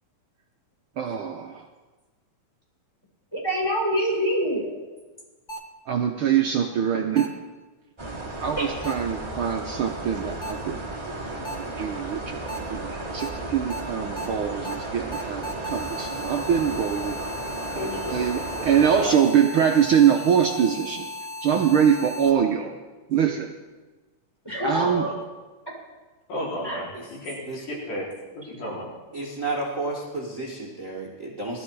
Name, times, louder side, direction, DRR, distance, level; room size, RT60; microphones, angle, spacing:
voice 1, 1.0-1.6 5.9-7.3 8.4-10.8 11.4-17.2 17.8-21.1 21.4-22.7 23.1-23.5 24.6-25.1, right 8 dB, 90° right, 2 dB, 1.1 m, -23 dB
voice 2, 3.3-4.7 8.6-8.7 24.4-25.1 26.6-26.8, equal, 5° left, -5 dB, 6.3 m, -25 dB
sound 1, 5.5-5.6 7.2-7.3 8.8-8.9 10.4-10.5 11.4-11.5 12.5-12.6 13.2-13.3 13.7-13.8 14.2-14.3 14.6-14.7 15.1-22.3, left 1 dB, 30° left, 1.0 m, -36 dB
sound 2, 8.0-19.0, right 2 dB, 15° right, 1.0 m, -34 dB
voice 3, 17.7-19.2 20.5-20.6 24.7-25.1 26.3-28.1 28.3-28.9, left 1 dB, 75° left, -5 dB, 5.7 m, -34 dB
voice 4, 29.1-31.6, right 2 dB, 30° right, -4 dB, 1.8 m, -31 dB
20.0 x 13.0 x 4.7 m, 1.3 s
omnidirectional pair, 3.6 m